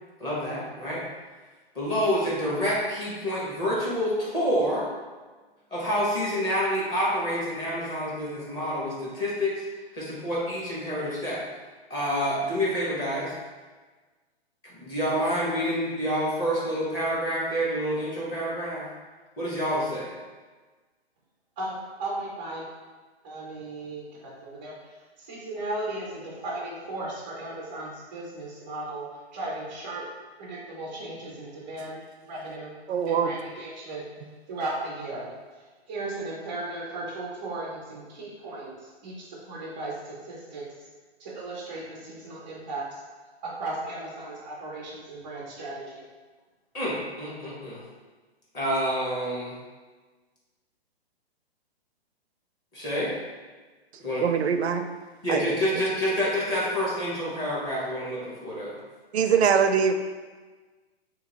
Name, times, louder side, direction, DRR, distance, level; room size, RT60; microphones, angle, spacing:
voice 1, 0.2-1.0 1.7-4.9 5.7-9.6 9.9-11.4 11.9-13.3 14.6-18.8 19.4-20.1 46.7-47.8 48.5-49.6 52.7-53.1 54.0-54.2 55.2-58.8, equal, 15° left, -7 dB, 0.7 m, -28 dB
voice 2, 21.6-22.7 23.2-24.8 25.2-30.1 30.4-32.8 33.1-34.1 34.5-35.3 35.9-40.7 41.2-43.0 43.4-46.0, right 2 dB, 10° right, -5 dB, 0.3 m, -36 dB
voice 3, 32.9-33.3 54.2-54.9 55.3-55.4 59.1-59.9, right 7 dB, 85° right, 7 dB, 0.5 m, -22 dB
3.0 x 2.7 x 4.0 m, 1.3 s
hypercardioid pair, 155°, 32 cm